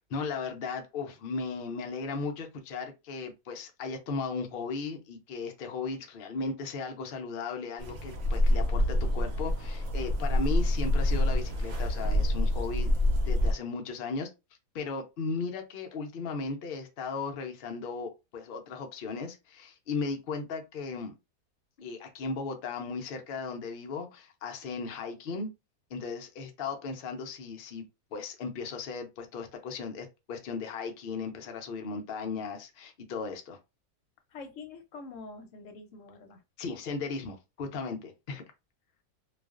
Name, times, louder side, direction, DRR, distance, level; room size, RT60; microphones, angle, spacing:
voice 1, 0.1-12.9 13.2-14.3 14.7-21.1 21.8-25.5 25.9-27.8 28.1-33.6 36.6-38.4, left 4 dB, 85° left, 0.5 m, -36 dB
sound 1, 7.8-13.5, left 1 dB, 65° right, 0.9 m, -27 dB
voice 2, 34.3-36.7, left 3 dB, 65° left, 0.9 m, -46 dB
2.4 x 2.3 x 2.3 m
omnidirectional pair, 1.7 m